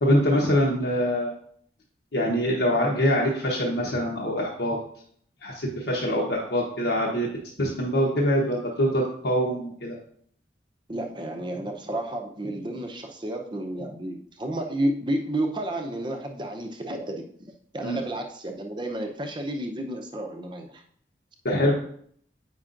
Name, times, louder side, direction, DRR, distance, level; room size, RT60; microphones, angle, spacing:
voice 1, 0.0-1.3 2.1-4.8 5.4-7.3 7.6-10.0 17.8-18.0 21.4-21.7, equal, 70° left, -3 dB, 1.0 m, -24 dB
voice 2, 10.9-17.2 17.7-20.8 21.6-21.7, right 1 dB, 25° right, 4 dB, 0.6 m, -31 dB
8.6 x 5.4 x 2.5 m, 0.62 s
head